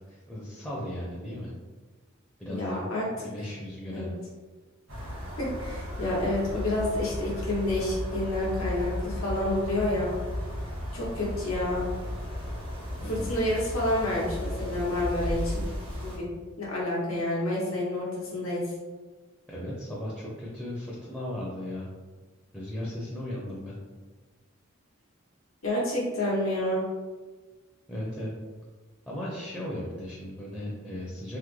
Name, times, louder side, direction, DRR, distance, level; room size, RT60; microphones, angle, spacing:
voice 1, 0.1-1.5 2.4-4.2 13.0-13.3 19.5-21.9 22.5-23.8 27.9-28.3 29.1-31.4, left 1 dB, 5° left, -6 dB, 0.4 m, -36 dB
voice 2, 2.5-3.0 3.9-4.1 5.4-10.2 10.9-11.9 13.1-15.6 16.0-16.3 16.6-18.0 18.3-18.6 25.6-26.8, left 1 dB, 85° left, -5 dB, 0.9 m, -29 dB
sound 1, 4.9-16.2, left 1 dB, 85° right, 1.3 m, -35 dB
3.5 x 2.0 x 3.0 m, 1.3 s
head